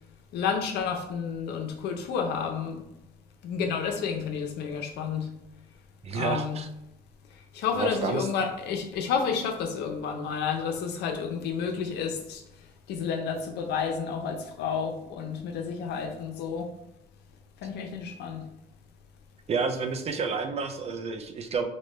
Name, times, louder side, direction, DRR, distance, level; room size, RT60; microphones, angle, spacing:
voice 1, 0.3-2.8 3.4-5.3 6.1-6.6 7.5-12.4 12.9-16.7 17.6-18.5, left 6 dB, 80° left, 4 dB, 0.6 m, -30 dB
voice 2, 6.0-6.7 7.7-8.3 19.5-21.6, right 5 dB, 40° right, 6 dB, 0.5 m, -30 dB
4.2 x 2.2 x 3.1 m, 0.84 s
cardioid pair, 110°, 17 cm